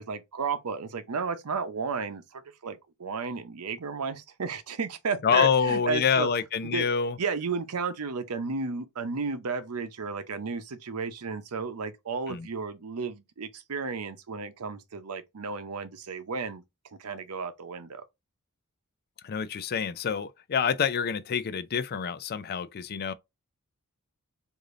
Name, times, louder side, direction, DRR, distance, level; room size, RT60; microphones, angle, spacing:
voice 1, 0.0-6.3 6.6-6.9 7.2-16.6 17.0-18.0, right 5 dB, 85° right, 0.7 m, -33 dB
voice 2, 5.2-7.2 12.3-12.5 19.2-23.1, left 7 dB, 45° left, 0.4 m, -27 dB
4.9 x 2.6 x 2.5 m
head